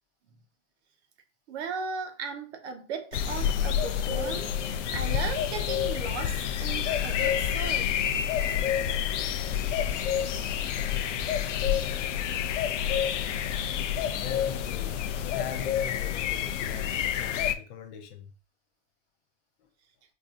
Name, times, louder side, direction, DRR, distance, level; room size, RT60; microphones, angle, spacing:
voice 1, 1.5-8.1, right 5 dB, 65° right, 0.9 m, -37 dB
sound 1, 3.1-17.5, left 9 dB, 80° left, 0.5 m, -28 dB
voice 2, 14.2-18.3, left 9 dB, 45° left, 0.6 m, -42 dB
4.6 x 2.6 x 2.4 m
hypercardioid pair, 125°, 36 cm